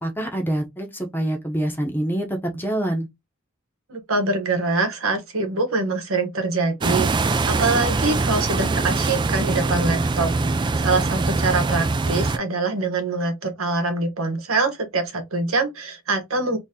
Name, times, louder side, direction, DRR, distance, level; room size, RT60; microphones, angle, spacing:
voice 1, 0.0-3.1, right 1 dB, 10° left, 0.8 m, -26 dB
voice 2, 3.9-16.6, right 3 dB, 90° right, 1.1 m, -24 dB
sound 1, 6.8-12.4, right 3 dB, 20° right, 0.3 m, -23 dB
2.8 x 2.8 x 3.6 m
head